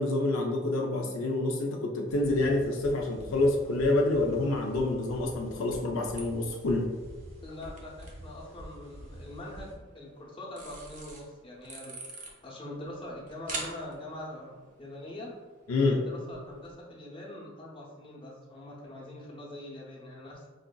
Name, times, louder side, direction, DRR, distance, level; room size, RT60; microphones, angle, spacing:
voice 1, 0.0-6.9 15.7-16.0, left 2 dB, 70° left, 0 dB, 0.4 m, -27 dB
sound 1, 2.1-9.7, equal, 65° right, 1.1 m, -47 dB
sound 2, 2.6-16.7, right 3 dB, 40° right, 0.6 m, -48 dB
voice 2, 7.4-12.2 12.4-15.3 15.8-20.5, left 1 dB, 25° left, -4 dB, 0.7 m, -43 dB
4.6 x 2.5 x 2.2 m, 1.4 s
head